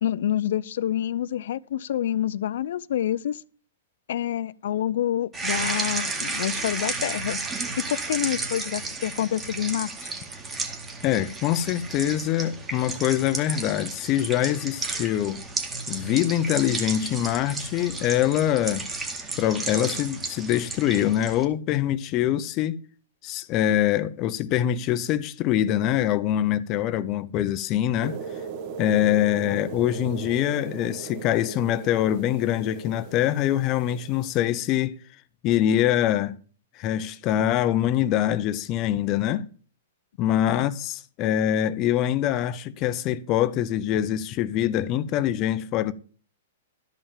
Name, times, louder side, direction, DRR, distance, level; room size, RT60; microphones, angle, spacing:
voice 1, 0.0-3.4 4.1-7.4 7.9-9.9 40.5-40.6, left 11 dB, 65° left, 0.6 m, -27 dB
sound 1, 5.3-21.4, right 3 dB, 15° right, 2.1 m, -33 dB
voice 2, 11.0-15.4 15.9-18.9 19.4-22.8 23.2-28.2 28.8-35.0 35.4-36.4 36.8-39.5 40.2-45.9, left 11 dB, 30° left, 0.7 m, -24 dB
sound 2, 28.0-34.4, right 6 dB, 40° right, 1.9 m, -38 dB
12.5 x 5.6 x 7.3 m
hypercardioid pair, 150°, 0 cm